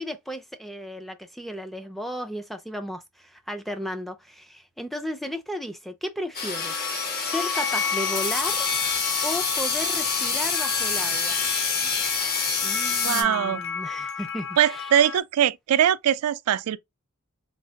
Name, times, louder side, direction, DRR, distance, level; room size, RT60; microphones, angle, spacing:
voice 1, 0.0-6.8 7.2-8.7 9.2-11.5 11.8-11.9 12.6-14.9, equal, ahead, 0.4 m, -34 dB
sound 1, 6.3-13.2, left 5 dB, 45° left, 0.9 m, -26 dB
sound 2, 6.5-15.2, left 6 dB, 60° left, 0.4 m, -33 dB
voice 2, 13.0-13.6 14.6-16.8, right 10 dB, 80° right, 0.3 m, -22 dB
3.2 x 2.8 x 2.7 m
head